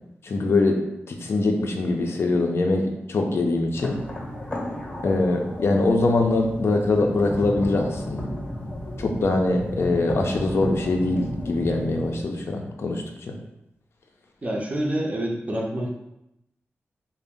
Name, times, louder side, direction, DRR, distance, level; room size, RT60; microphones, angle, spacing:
voice 1, 0.2-0.8 1.1-4.0 5.0-8.3 9.0-13.3, left 2 dB, 65° left, 2 dB, 0.4 m, -23 dB
sound 1, 3.7-12.2, left 1 dB, 20° left, 0.7 m, -33 dB
voice 2, 14.4-16.0, right 1 dB, 30° right, -1 dB, 0.5 m, -27 dB
2.5 x 2.0 x 3.6 m, 0.85 s
cardioid pair, 70°, 5 cm